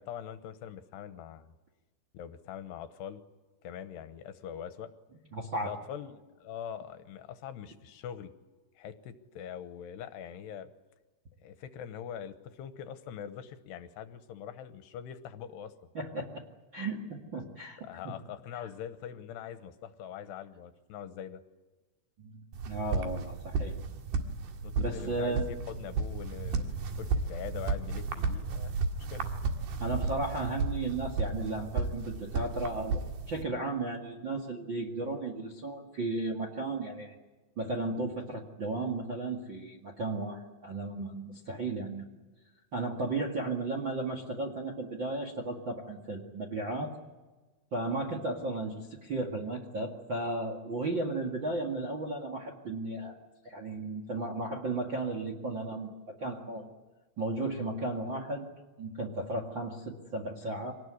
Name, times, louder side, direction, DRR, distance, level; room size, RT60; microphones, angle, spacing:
voice 1, 0.0-1.5 2.1-3.2 3.6-4.9 5.7-8.3 8.8-10.7 11.4-15.7 17.8-21.4 24.6-28.7 29.0-29.3, left 9 dB, 75° left, 10 dB, 2.9 m, -43 dB
voice 2, 5.3-5.7 15.9-16.4 16.7-18.1 18.5-18.7 22.2-23.7 24.8-25.5 29.8-33.0 33.3-37.2 37.6-42.2 42.7-46.9 47.7-53.1 53.4-56.7 57.2-58.5 58.8-60.7, right 2 dB, 40° right, 2 dB, 1.7 m, -35 dB
sound 1, 22.5-33.4, right 4 dB, 60° right, 3.4 m, -33 dB
25.5 x 19.0 x 9.7 m, 1.2 s
omnidirectional pair, 5.4 m